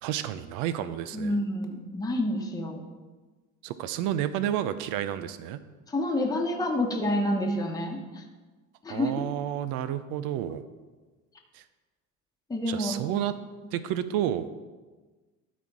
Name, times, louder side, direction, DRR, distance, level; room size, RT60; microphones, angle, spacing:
voice 1, 0.0-1.4 3.6-5.6 8.9-10.6 11.5-11.6 12.7-13.4 13.7-14.5, right 11 dB, 80° right, 13 dB, 0.6 m, -30 dB
voice 2, 1.1-2.8 5.9-8.2 8.8-9.1 12.5-12.9, left 1 dB, 10° left, 1 dB, 1.0 m, -28 dB
12.5 x 4.2 x 4.7 m, 1.3 s
cardioid pair, 120°, 34 cm